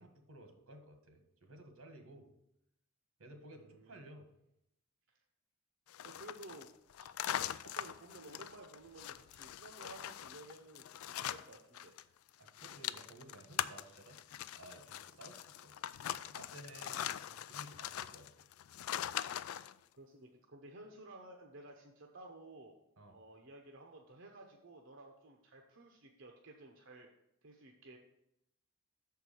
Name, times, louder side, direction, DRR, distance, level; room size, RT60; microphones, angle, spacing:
voice 1, 0.0-2.3 3.2-4.3 12.4-14.2 14.5-15.8 16.2-17.2 17.5-18.5 23.0-23.2, right 1 dB, 80° right, 5 dB, 1.4 m, -55 dB
voice 2, 3.6-4.0 5.1-5.2 6.0-6.7 7.0-12.1 16.7-17.6 19.1-19.7 20.0-22.7 23.1-27.1 27.4-28.0, right 2 dB, 60° right, 1 dB, 0.8 m, -55 dB
sound 1, 5.9-12.0 12.3-19.7, left 11 dB, 85° left, 0.3 m, -42 dB
6.7 x 4.7 x 6.8 m, 0.82 s
head